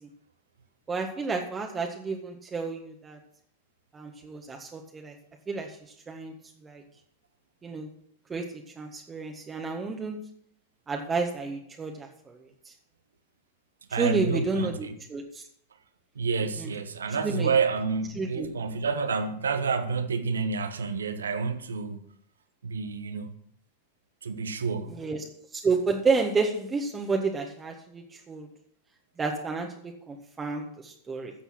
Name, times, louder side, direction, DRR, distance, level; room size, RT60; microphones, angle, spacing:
voice 1, 0.9-3.2 3.9-5.1 5.5-5.7 6.1-6.3 6.6-6.8 7.6-7.9 8.3-8.4 8.8-10.2 10.9-12.4 12.6-12.7 14.0-14.7 15.1-15.4 16.6-16.7 17.2-17.5 18.2-18.5 24.9-25.2 25.5-28.5 29.2-31.3, right 4 dB, 20° right, 1.6 m, -30 dB
voice 2, 13.9-14.9 16.1-22.0 22.6-23.3 24.2-25.0, right 5 dB, 70° right, 1.3 m, -29 dB
14.0 x 7.9 x 6.2 m
figure-of-eight pair, 90°, 0 cm